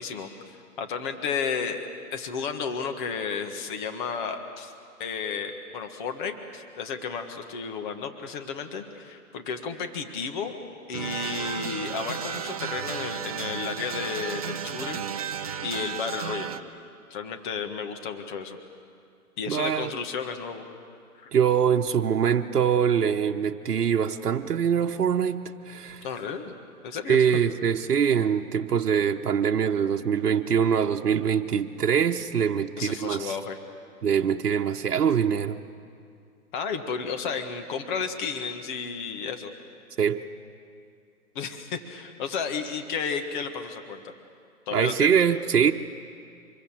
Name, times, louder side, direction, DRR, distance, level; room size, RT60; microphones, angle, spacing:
voice 1, 0.0-4.7 5.0-10.6 10.9-15.0 15.6-16.5 17.1-18.6 19.4-20.6 21.1-21.3 26.0-26.5 26.8-27.2 32.8-33.6 36.5-39.5 41.3-44.1 44.7-45.2, left 6 dB, 30° left, 6 dB, 1.7 m, -32 dB
sound 1, 10.9-16.6, right 8 dB, 25° right, 0.5 m, -33 dB
voice 2, 19.5-19.9 21.3-26.0 27.1-33.3 34.0-35.6 40.0-40.2 44.7-45.7, right 7 dB, 75° right, 3 dB, 1.1 m, -23 dB
25.5 x 22.5 x 7.5 m, 2.4 s
hypercardioid pair, 145°, 46 cm